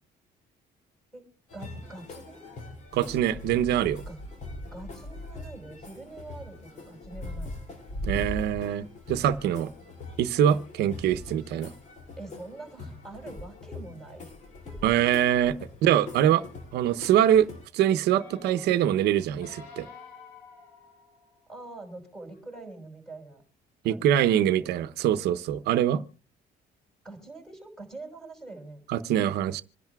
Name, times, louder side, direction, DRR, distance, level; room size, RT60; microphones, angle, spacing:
sound 1, 1.5-17.7, left 1 dB, 45° left, 2.9 m, -41 dB
voice 1, 1.5-2.4 4.1-4.2 4.7-7.5 12.1-14.4 14.7-14.8 21.5-23.4 23.8-24.8 27.0-28.8, right 2 dB, 5° left, 5.7 m, -44 dB
voice 2, 2.9-4.0 8.0-9.7 10.2-11.7 14.8-16.4 16.7-17.5 17.7-19.9 23.8-26.0 28.9-29.6, right 10 dB, 80° right, 0.8 m, -24 dB
sound 2, 18.1-21.6 22.2-22.3, left 4 dB, 85° left, 3.3 m, -49 dB
26.5 x 10.5 x 2.3 m
cardioid pair, 110°, 17 cm